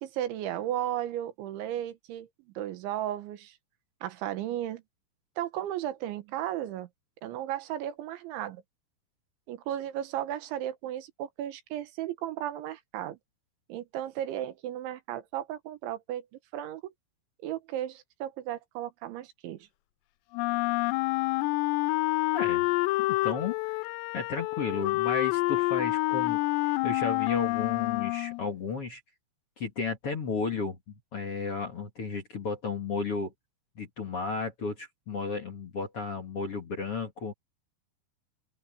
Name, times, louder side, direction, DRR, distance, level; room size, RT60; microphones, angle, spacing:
voice 1, 0.0-2.3 2.6-3.6 4.0-4.8 5.4-6.9 7.2-8.6 9.5-13.2 13.7-16.3 16.5-16.9 17.4-19.6, right 12 dB, 80° right, 3.7 m, -35 dB
Wind instrument woodwind instrument, 20.3-28.5, left 21 dB, 85° left, 2.5 m, -28 dB
voice 2, 22.3-22.8 23.1-26.4 26.6-29.0 29.6-33.3 33.8-37.3, left 4 dB, 45° left, 2.2 m, -33 dB
open air
omnidirectional pair, 5.3 m